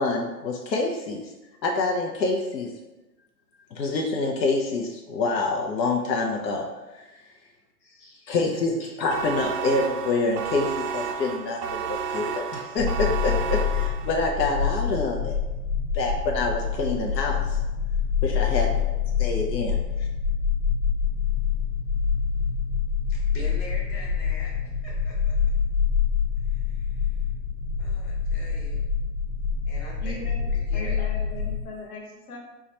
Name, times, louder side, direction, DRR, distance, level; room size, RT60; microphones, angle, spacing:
voice 1, 0.0-1.3 1.6-2.7 3.7-6.7 6.9-7.1 8.3-15.3 15.9-17.6 18.2-18.7 19.2-20.1, left 3 dB, 90° left, 1 dB, 0.7 m, -26 dB
voice 2, 7.8-8.3 8.8-8.9 9.4-9.5 18.4-19.0 23.1-25.3 26.4-27.2 27.8-28.8 29.7-30.2 30.5-31.1, left 1 dB, 30° left, -5 dB, 1.0 m, -44 dB
sound 1, 9.1-14.4, right 7 dB, 75° right, 0.6 m, -32 dB
sound 2, 12.8-31.6, left 6 dB, 15° right, 0.5 m, -26 dB
voice 3, 30.0-30.5 30.7-32.4, left 2 dB, 60° left, -1 dB, 1.2 m, -38 dB
4.6 x 2.2 x 2.8 m, 1.1 s
hypercardioid pair, 130°, 49 cm